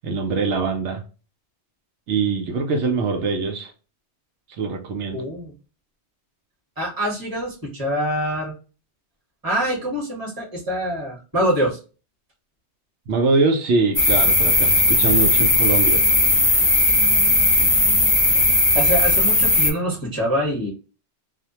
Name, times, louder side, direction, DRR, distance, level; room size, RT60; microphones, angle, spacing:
voice 1, 0.0-1.0 2.1-3.7 4.6-5.2 13.1-16.0, right 4 dB, 85° right, 0.9 m, -23 dB
voice 2, 5.1-5.5 6.8-8.5 9.4-11.8 18.7-20.7, equal, 20° right, 1.0 m, -25 dB
sound 1, 13.9-19.7, left 2 dB, 15° left, 0.5 m, -17 dB
2.4 x 2.1 x 2.7 m
omnidirectional pair, 1.2 m